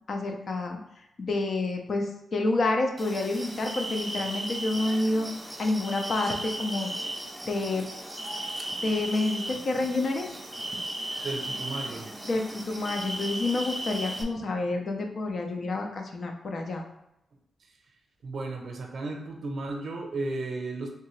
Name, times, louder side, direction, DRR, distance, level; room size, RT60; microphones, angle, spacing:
voice 1, 0.1-0.8 1.2-5.3 5.6-6.9 7.5-7.9 8.8-10.3 12.2-16.9, left 2 dB, 55° left, 3 dB, 0.5 m, -28 dB
sound 1, 3.0-14.2, right 1 dB, 10° right, 0.5 m, -36 dB
voice 2, 11.2-12.1 18.2-20.9, right 2 dB, 65° right, 2 dB, 0.6 m, -34 dB
3.4 x 2.8 x 3.1 m, 0.85 s
cardioid pair, 105°, 0 cm